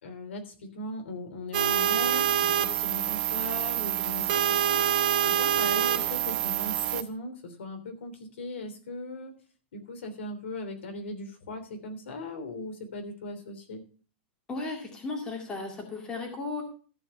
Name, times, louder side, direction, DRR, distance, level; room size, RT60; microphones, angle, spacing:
voice 1, 0.0-4.9 5.2-9.3 9.7-13.8, left 2 dB, 85° left, 4 dB, 3.2 m, -38 dB
sound 1, 1.5-7.0, right 11 dB, 45° right, 1.0 m, -26 dB
voice 2, 14.5-16.6, left 3 dB, 10° left, 2 dB, 2.1 m, -35 dB
14.0 x 5.2 x 6.6 m, 0.40 s
supercardioid pair, 175°, 6 cm